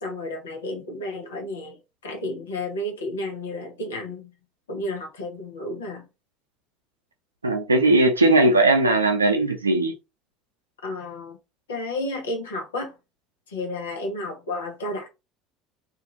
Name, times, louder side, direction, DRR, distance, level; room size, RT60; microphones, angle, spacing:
voice 1, 0.0-4.3 4.7-6.1 10.8-11.4 11.7-12.9 13.5-15.1, left 1 dB, 75° left, 0.8 m, -32 dB
voice 2, 7.4-9.9, right 2 dB, 85° right, 0.5 m, -18 dB
2.5 x 2.5 x 2.9 m
figure-of-eight pair, 65°, 0 cm